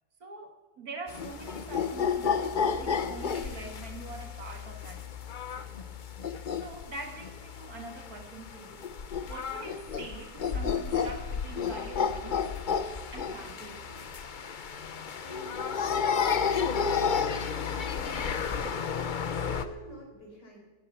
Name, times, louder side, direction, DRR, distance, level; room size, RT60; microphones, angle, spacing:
voice 1, 0.2-5.1 5.6-5.9 6.2-8.8 9.3-12.7 13.1-14.2, right 3 dB, 60° right, 4 dB, 2.3 m, -44 dB
sound 1, 1.1-19.6, left 6 dB, 45° left, 0.6 m, -32 dB
voice 2, 15.2-17.2 17.5-20.6, right 1 dB, 90° left, 0 dB, 5.7 m, -48 dB
15.0 x 11.0 x 7.0 m, 1.2 s
omnidirectional pair, 1.8 m